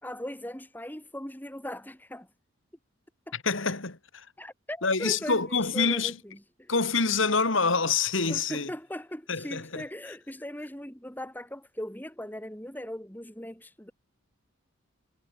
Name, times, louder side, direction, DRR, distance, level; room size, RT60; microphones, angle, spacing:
voice 1, 0.0-2.3 3.3-3.4 4.4-6.7 8.3-13.9, left 1 dB, 10° left, 3.0 m, -39 dB
voice 2, 3.4-4.2 4.8-6.1 6.7-8.7 9.3-9.8, left 4 dB, 65° left, 2.5 m, -26 dB
head